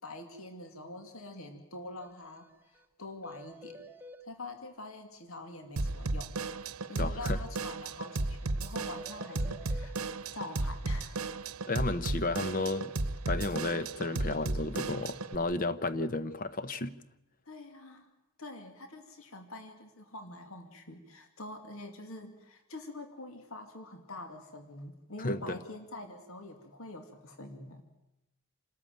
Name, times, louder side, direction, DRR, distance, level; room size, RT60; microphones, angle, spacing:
voice 1, 0.0-3.9 4.2-6.4 6.9-9.9 10.3-11.2 17.4-18.1 18.4-27.8, left 2 dB, 70° left, 2.5 m, -45 dB
sound 1, 2.0-2.1 2.4-2.5 2.8-2.9 3.2-4.2 8.9-9.9, equal, 10° right, 1.0 m, -49 dB
Drum kit / Drum, 5.8-15.4, right 2 dB, 85° right, 1.0 m, -34 dB
voice 2, 7.0-7.4 11.7-12.9 13.3-17.0 25.2-25.6, left 2 dB, 40° left, 0.9 m, -33 dB
28.0 x 13.5 x 9.0 m
head